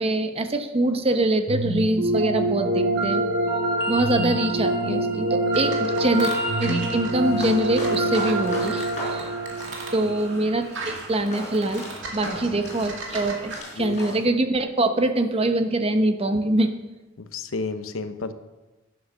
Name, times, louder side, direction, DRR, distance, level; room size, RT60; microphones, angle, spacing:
voice 1, 0.0-3.2 3.9-9.3 9.9-11.8 12.1-16.7, right 2 dB, 30° right, 8 dB, 0.9 m, -24 dB
sound 1, 1.5-10.6, right 1 dB, 50° right, 2.1 m, -25 dB
sound 2, 5.5-13.6, right 3 dB, 65° right, 2.2 m, -37 dB
sound 3, 7.2-14.2, left 1 dB, 35° left, 4.1 m, -38 dB
voice 2, 17.2-18.3, left 3 dB, 85° left, 10 dB, 0.9 m, -32 dB
11.0 x 9.4 x 6.3 m, 1.1 s
head